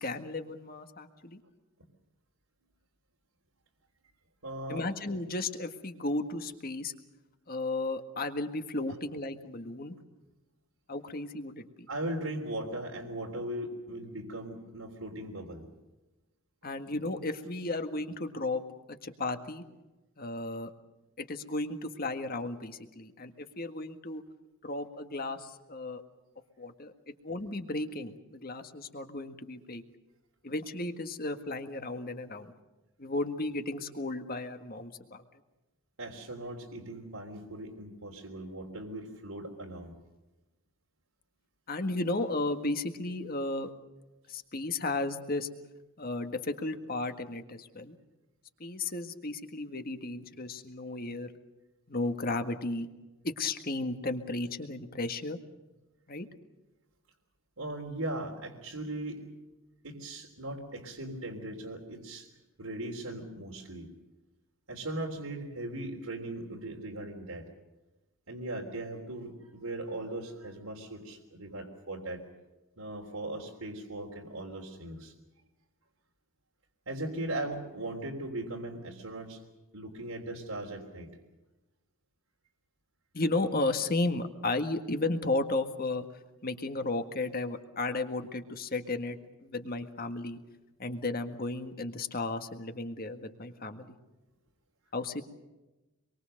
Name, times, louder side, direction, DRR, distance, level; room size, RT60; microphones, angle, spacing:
voice 1, 0.0-1.4 4.7-6.9 7.5-9.9 10.9-11.9 16.6-18.6 19.0-19.6 20.2-20.7 21.2-24.2 24.6-26.0 26.6-29.8 30.4-32.5 33.0-35.2 41.7-43.7 44.3-45.5 46.0-48.0 48.6-51.3 51.9-52.9 53.2-55.4 56.1-56.3 83.1-86.0 86.4-90.4 90.8-94.0 94.9-95.2, left 2 dB, 40° left, 7 dB, 1.8 m, -34 dB
voice 2, 4.4-4.8 11.9-15.7 36.0-39.9 57.6-59.3 59.8-62.3 62.6-63.9 64.7-67.5 68.3-72.2 72.8-75.1 76.9-79.4 79.7-81.1, right 1 dB, 80° right, -3 dB, 3.6 m, -38 dB
26.5 x 23.0 x 6.6 m, 1.1 s
head